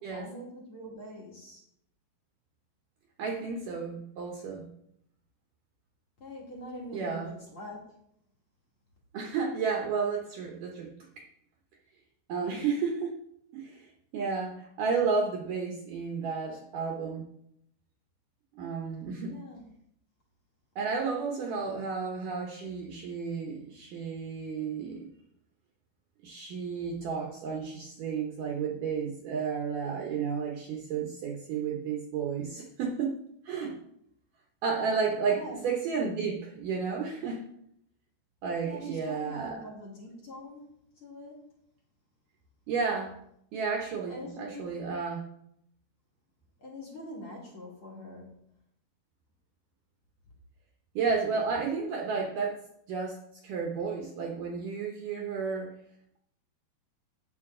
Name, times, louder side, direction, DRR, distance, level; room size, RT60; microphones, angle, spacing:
voice 1, 0.0-1.6 6.2-7.9 19.3-19.7 21.5-21.9 35.3-35.6 38.6-41.4 44.1-44.8 46.6-48.4, left 1 dB, 45° left, -3 dB, 2.0 m, -44 dB
voice 2, 3.2-4.7 6.9-7.3 9.1-10.9 11.2-11.3 12.3-13.2 13.5-17.3 18.6-19.4 20.8-25.1 26.2-33.1 33.5-33.8 34.6-37.4 38.4-39.6 42.7-43.2 43.5-45.2 51.0-52.6 52.9-55.7, right 5 dB, 70° right, 0 dB, 2.2 m, -32 dB
9.6 x 7.9 x 3.7 m, 0.73 s
omnidirectional pair, 4.6 m